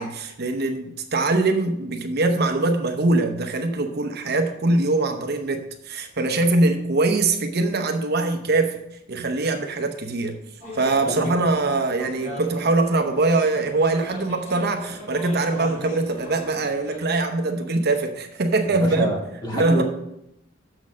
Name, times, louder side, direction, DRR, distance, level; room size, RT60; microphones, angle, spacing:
voice 1, 0.0-8.8 9.1-10.4 10.7-19.1 19.5-19.8, right 2 dB, 55° right, 5 dB, 0.9 m, -22 dB
sound 1, 10.6-17.1, left 1 dB, 40° left, 3.5 m, -38 dB
voice 2, 18.7-19.8, right 1 dB, 25° left, -2 dB, 2.4 m, -28 dB
7.3 x 6.2 x 6.3 m, 0.81 s
head